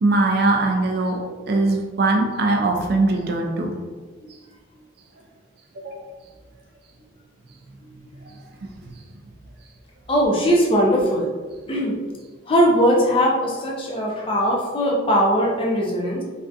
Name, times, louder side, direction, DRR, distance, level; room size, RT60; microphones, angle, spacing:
voice 1, 0.0-1.2 1.5-3.8 5.8-6.1 8.2-8.3 8.6-8.9, right 2 dB, 50° right, 2 dB, 0.3 m, -21 dB
voice 2, 10.1-11.3 11.7-12.0 12.5-16.2, equal, 25° left, -2 dB, 0.4 m, -20 dB
3.3 x 2.4 x 2.6 m, 1.4 s
head